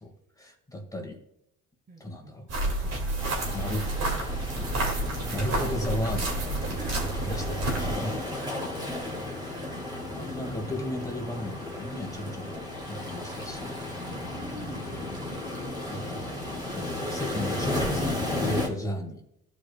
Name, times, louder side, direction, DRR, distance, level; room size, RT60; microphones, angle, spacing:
voice 1, 0.0-1.2 2.0-3.0 3.5-3.9 4.6-4.7 5.3-6.4 6.7-6.8 7.3-7.4 7.8-8.2 10.1-13.8 15.9-19.2, left 1 dB, 10° left, 1 dB, 2.1 m, -35 dB
voice 2, 1.9-2.3 6.8-7.6 8.2-10.0 14.0-15.2 16.2-16.4, right 2 dB, 30° right, 2 dB, 1.3 m, -47 dB
sound 1, 2.5-8.0, right 2 dB, 55° right, 2.4 m, -30 dB
sound 2, 3.2-18.7, left 1 dB, 15° right, 2.3 m, -34 dB
14.5 x 5.1 x 2.4 m, 0.81 s
cardioid pair, 95°, 31 cm